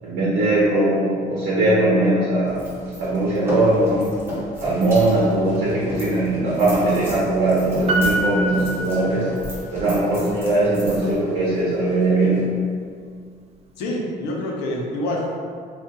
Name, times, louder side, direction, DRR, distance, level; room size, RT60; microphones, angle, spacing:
voice 1, 0.0-2.7 3.0-4.1 4.6-9.3 9.7-12.5, right 2 dB, 80° right, -8 dB, 0.8 m, -20 dB
sound 1, 2.5-12.4, equal, 15° right, 1.0 m, -34 dB
Piano, 7.9-9.7 10.0-10.1, equal, 40° right, 0.4 m, -25 dB
voice 2, 13.8-15.4, left 1 dB, 85° left, -2 dB, 0.7 m, -26 dB
2.7 x 2.4 x 3.6 m, 2.1 s
cardioid pair, 110°, 17 cm